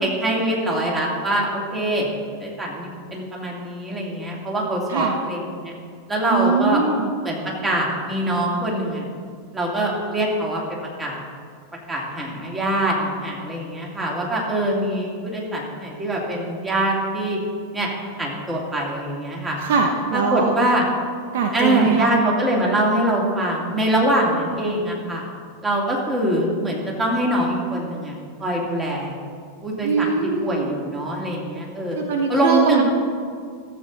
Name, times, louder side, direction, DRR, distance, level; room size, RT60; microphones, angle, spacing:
voice 1, 0.0-2.1 2.4-5.7 6.1-6.8 7.2-9.0 9.5-10.6 11.0-11.2 11.9-17.4 17.7-17.9 18.2-19.6 20.1-20.9 21.5-25.2 25.6-29.2 29.6-30.1 30.4-32.0 32.3-32.8, right 1 dB, 15° right, -2 dB, 2.6 m, -23 dB
voice 2, 6.3-7.1 19.6-20.5 21.3-22.1 29.8-30.7 32.0-32.8, right 5 dB, 55° right, 3 dB, 0.8 m, -21 dB
13.5 x 8.0 x 4.0 m, 2.1 s
figure-of-eight pair, 90°, 0 cm